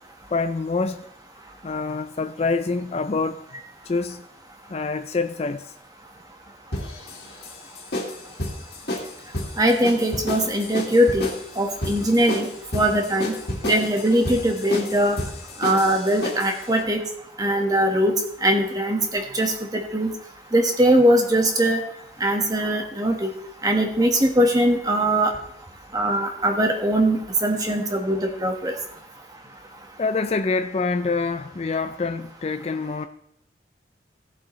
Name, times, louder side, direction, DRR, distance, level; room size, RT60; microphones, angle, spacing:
voice 1, 0.3-1.1 1.6-3.5 3.9-4.2 4.7-5.7 30.0-33.1, left 4 dB, 35° left, 0.4 m, -26 dB
sound 1, 6.7-16.6, left 1 dB, 65° left, 2.4 m, -31 dB
voice 2, 9.6-11.3 11.6-13.4 13.6-15.2 15.6-17.0 17.4-18.1 18.4-20.1 20.5-21.8 22.2-23.3 23.6-25.3 25.9-28.7, right 1 dB, 20° right, 1.4 m, -21 dB
17.0 x 7.6 x 3.1 m
head